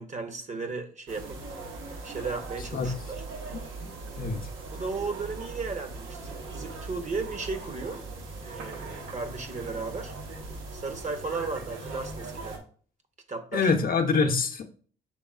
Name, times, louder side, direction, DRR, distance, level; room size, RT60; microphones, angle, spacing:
voice 1, 0.0-1.4 2.0-2.9 4.7-8.0 8.4-10.1 10.7-12.6 13.3-13.7, right 4 dB, 35° right, 7 dB, 0.9 m, -35 dB
sound 1, 1.1-12.6, right 3 dB, 80° right, 1.0 m, -40 dB
voice 2, 13.5-14.6, left 4 dB, 45° left, 5 dB, 0.7 m, -25 dB
6.2 x 3.5 x 2.4 m, 0.43 s
cardioid pair, 90°, 20 cm